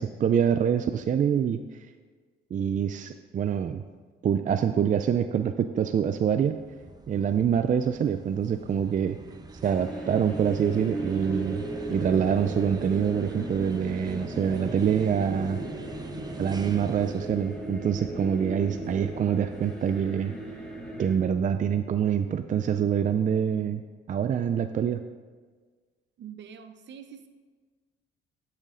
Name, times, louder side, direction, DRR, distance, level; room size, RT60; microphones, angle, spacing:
voice 1, 0.0-1.6 2.5-3.8 4.2-6.6 7.1-9.2 9.6-11.6 11.9-15.6 16.4-20.3 21.0-23.8 24.1-25.0, right 8 dB, 40° right, 9 dB, 0.4 m, -25 dB
sound 1, 6.4-20.9, right 3 dB, 20° right, 0.9 m, -44 dB
sound 2, 9.6-21.2, right 1 dB, 5° left, 1.9 m, -37 dB
voice 2, 26.2-27.3, right 8 dB, 65° right, 9 dB, 0.8 m, -44 dB
12.0 x 6.6 x 3.7 m, 1.5 s
cardioid pair, 90°, 20 cm